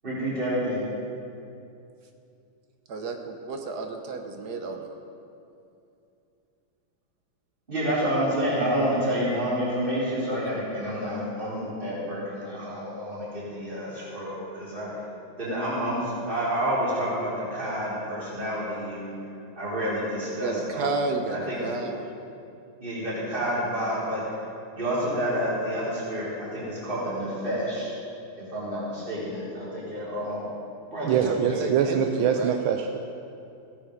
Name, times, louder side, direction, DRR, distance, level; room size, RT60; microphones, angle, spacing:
voice 1, 0.0-0.9 7.7-14.9 15.4-19.1 19.6-20.9 21.3-21.6 22.8-24.2 24.7-27.9 28.3-30.4 30.9-31.7, equal, 20° right, -9 dB, 3.7 m, -29 dB
voice 2, 2.9-4.9 20.4-22.1 31.1-32.6, right 3 dB, 55° right, 4 dB, 1.3 m, -31 dB
voice 3, 31.0-33.0, right 7 dB, 75° right, 5 dB, 1.4 m, -24 dB
16.5 x 8.9 x 5.1 m, 2.6 s
omnidirectional pair, 2.4 m